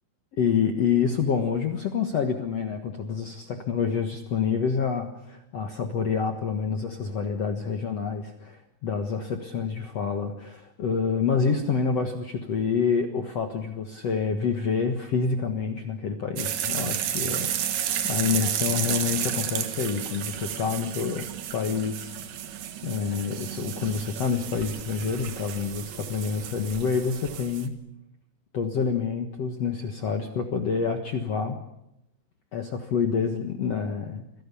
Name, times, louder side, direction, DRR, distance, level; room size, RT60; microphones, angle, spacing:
voice 1, 0.4-17.5 18.0-22.1 22.8-27.7 28.5-31.6 32.5-34.2, left 6 dB, 75° left, 5 dB, 1.5 m, -27 dB
sound 1, 16.4-27.7, right 10 dB, 60° right, 2.6 m, -32 dB
27.0 x 17.5 x 8.5 m, 0.83 s
omnidirectional pair, 5.3 m